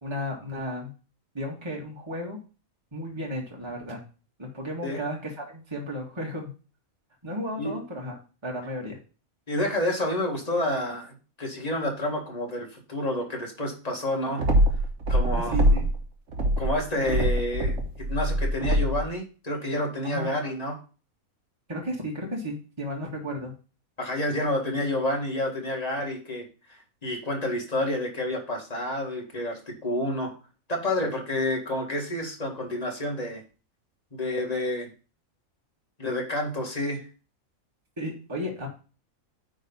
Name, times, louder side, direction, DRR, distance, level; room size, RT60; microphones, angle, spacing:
voice 1, 0.0-0.9 1.3-2.4 2.9-4.0 4.4-6.5 7.2-8.2 8.4-9.0 15.2-15.8 20.0-20.3 21.7-23.5 38.0-38.7, equal, 20° right, -1 dB, 1.8 m, -34 dB
voice 2, 9.5-14.4 15.1-15.6 16.6-20.8 24.0-26.4 27.0-30.3 30.7-33.4 34.1-34.9 36.0-37.0, left 1 dB, 30° left, 0 dB, 2.1 m, -29 dB
sound 1, 14.4-16.0 16.3-19.1, right 1 dB, 60° right, 1.5 m, -23 dB
9.2 x 3.9 x 5.5 m, 0.35 s
omnidirectional pair, 1.5 m